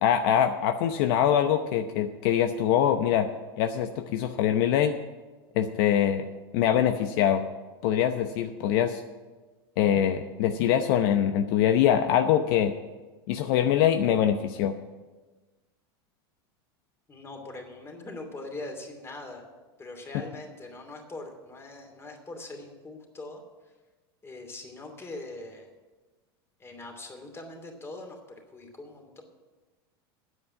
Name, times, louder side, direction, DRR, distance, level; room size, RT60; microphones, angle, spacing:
voice 1, 0.0-3.3 3.6-4.9 5.6-6.2 6.5-7.4 7.8-9.0 9.8-12.7 13.3-14.7, left 10 dB, 65° left, 7 dB, 0.8 m, -23 dB
voice 2, 17.1-19.4 19.8-23.4 24.2-25.7 26.6-29.2, left 2 dB, 20° left, 3 dB, 2.8 m, -42 dB
9.4 x 8.1 x 9.6 m, 1.3 s
hypercardioid pair, 105°, 13 cm